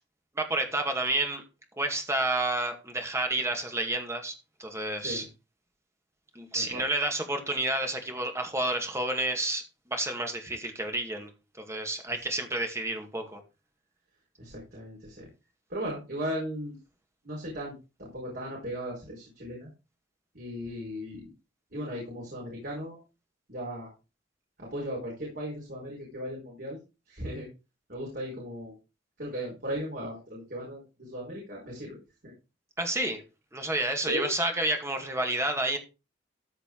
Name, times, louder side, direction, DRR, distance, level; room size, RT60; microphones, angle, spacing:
voice 1, 0.4-1.4 1.8-4.3 4.6-5.3 6.4-11.3 11.6-13.4 32.8-33.2 33.5-35.8, right 2 dB, 15° right, 2.0 m, -30 dB
voice 2, 14.4-15.3 15.7-16.8 17.2-19.7 20.3-21.3 21.7-23.0 23.5-23.9 24.6-26.8 27.1-27.5 27.9-28.7 29.2-32.3 34.1-34.3, equal, 60° right, 4.7 m, -37 dB
14.0 x 4.9 x 4.6 m
head